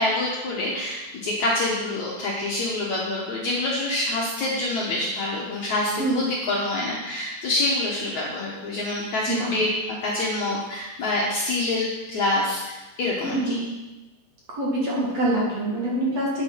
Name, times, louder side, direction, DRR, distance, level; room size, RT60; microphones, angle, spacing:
voice 1, 0.0-13.6, left 2 dB, 60° left, -4 dB, 2.1 m, -26 dB
voice 2, 6.0-6.3 9.3-9.5 13.2-13.7 14.5-16.4, right 1 dB, 45° right, -4 dB, 2.7 m, -25 dB
9.7 x 8.9 x 5.8 m, 1.1 s
omnidirectional pair, 4.9 m